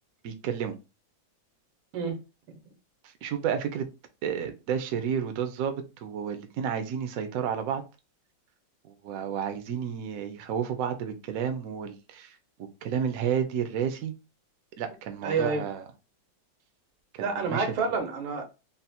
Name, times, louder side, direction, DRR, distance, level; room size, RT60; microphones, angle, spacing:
voice 1, 0.2-0.8 3.0-3.9 4.2-7.8 8.8-14.1 14.8-15.8 17.1-17.7, right 8 dB, 75° right, 0.8 m, -31 dB
voice 2, 15.2-15.7 17.2-18.4, right 4 dB, 90° right, 1.7 m, -28 dB
3.9 x 2.0 x 4.2 m
omnidirectional pair, 2.1 m